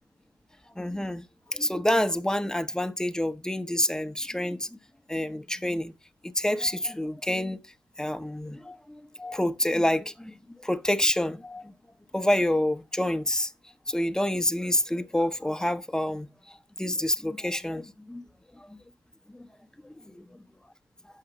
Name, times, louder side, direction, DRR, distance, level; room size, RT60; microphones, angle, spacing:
voice 1, 0.8-1.2 1.5-4.7 5.1-5.9 6.2-7.6 8.0-10.3 10.6-11.7 12.1-13.5 13.9-18.2 18.6-18.8 19.8-20.0, left 1 dB, 5° left, 0.7 m, -28 dB
6.6 x 5.7 x 5.9 m
cardioid pair, 50°, 9 cm